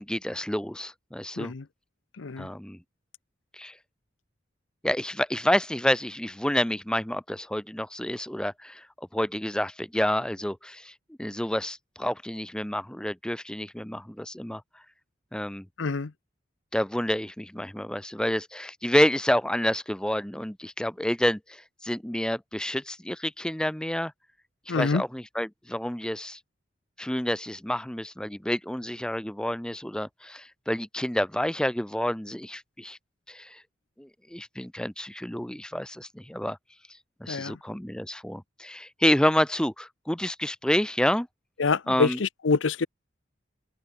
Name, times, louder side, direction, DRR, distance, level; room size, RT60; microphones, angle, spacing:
voice 1, 0.0-1.5 2.4-2.8 3.5-3.8 4.8-14.8 15.3-15.6 16.7-24.1 24.7-26.4 27.0-33.0 33.3-33.6 34.0-36.6 37.2-41.3 41.9-42.2, left 1 dB, 5° left, 0.6 m, -29 dB
voice 2, 2.2-2.5 15.8-16.1 24.7-25.0 37.3-37.6 41.6-42.9, left 4 dB, 85° left, 0.7 m, -26 dB
head